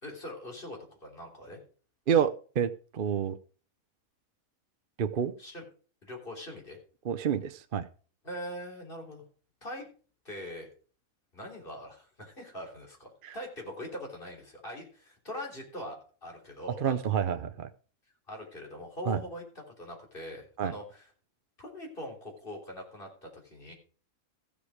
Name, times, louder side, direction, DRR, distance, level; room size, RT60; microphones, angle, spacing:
voice 1, 0.0-1.6 5.4-5.6 6.0-6.8 8.2-9.2 9.6-9.9 10.3-10.7 11.3-17.0 17.3-17.4 18.3-19.4 19.8-21.1 21.6-23.7, left 1 dB, 40° left, 3.7 m, -42 dB
voice 2, 2.1-3.4 5.0-5.3 7.0-7.9 13.2-13.4 16.8-17.7 19.1-19.2 20.6-20.7, right 8 dB, 50° right, 0.7 m, -28 dB
14.5 x 7.1 x 4.9 m
omnidirectional pair, 1.5 m